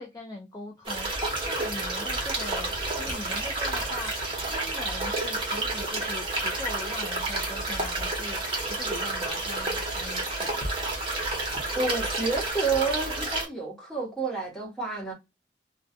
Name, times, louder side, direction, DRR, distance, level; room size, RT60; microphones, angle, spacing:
voice 1, 0.0-10.6, left 2 dB, 20° left, 0.3 m, -41 dB
sound 1, 0.9-13.5, right 2 dB, 25° right, 0.8 m, -30 dB
voice 2, 11.7-15.1, right 4 dB, ahead, 0.9 m, -29 dB
2.2 x 2.2 x 2.5 m
head